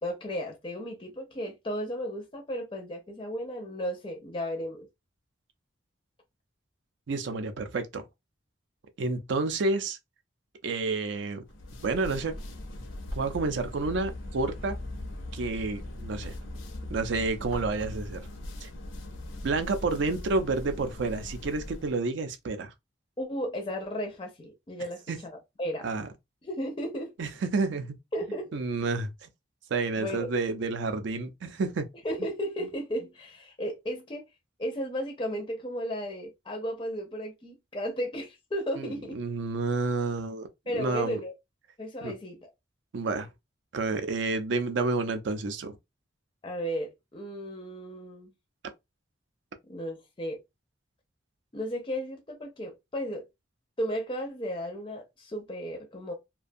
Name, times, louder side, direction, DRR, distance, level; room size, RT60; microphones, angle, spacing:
voice 1, 0.0-4.9 23.2-25.9 26.4-27.1 28.1-28.5 29.9-30.3 32.0-34.2 34.6-39.2 40.7-41.3 41.8-42.5 46.4-48.3 49.7-50.4 51.5-53.3 53.8-56.1, equal, 25° left, 0.4 m, -34 dB
voice 2, 7.1-8.0 9.0-10.0 10.6-11.4 11.8-12.3 13.2-14.8 15.3-16.4 16.9-18.2 18.6-18.7 19.4-22.7 25.1-25.2 25.8-26.1 27.2-27.9 28.5-29.3 29.7-31.9 38.8-40.5 40.7-41.2 42.0-42.1 42.9-43.3 43.7-45.8, right 3 dB, 70° right, 0.4 m, -30 dB
sound 1, 11.5-22.0, left 1 dB, 90° left, 0.6 m, -39 dB
2.5 x 2.2 x 2.5 m
head